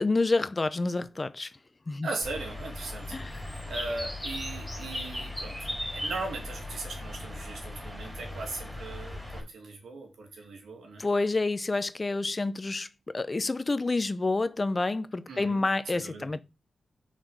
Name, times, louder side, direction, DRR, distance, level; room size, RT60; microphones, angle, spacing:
voice 1, 0.0-1.5 1.9-2.1 3.1-3.5 11.0-12.9 13.1-16.4, left 3 dB, 30° left, 0.6 m, -28 dB
voice 2, 2.0-3.4 3.6-11.0 15.3-16.3, right 3 dB, 90° right, 2.4 m, -39 dB
Bird, 2.2-9.4, left 1 dB, ahead, 4.0 m, -38 dB
5.7 x 5.1 x 6.5 m
cardioid pair, 85°, 0 cm